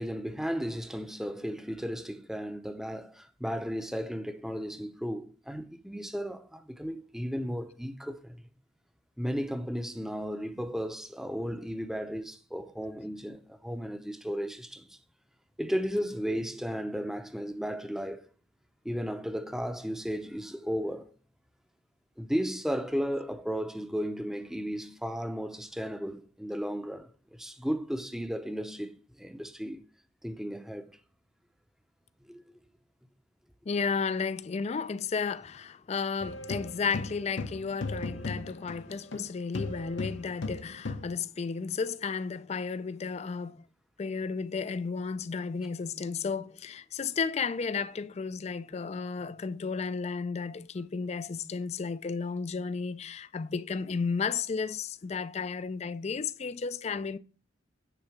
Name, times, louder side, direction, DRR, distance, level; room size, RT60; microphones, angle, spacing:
voice 1, 0.0-8.4 9.2-15.0 15.6-18.3 18.8-21.1 22.2-29.8 30.2-31.0 32.3-32.6, equal, ahead, 0.6 m, -34 dB
voice 2, 33.7-43.6 44.0-57.2, left 5 dB, 35° left, 0.4 m, -33 dB
sound 1, 36.2-39.3 39.5-41.2, left 3 dB, 65° left, 0.7 m, -36 dB
9.7 x 3.8 x 5.9 m
head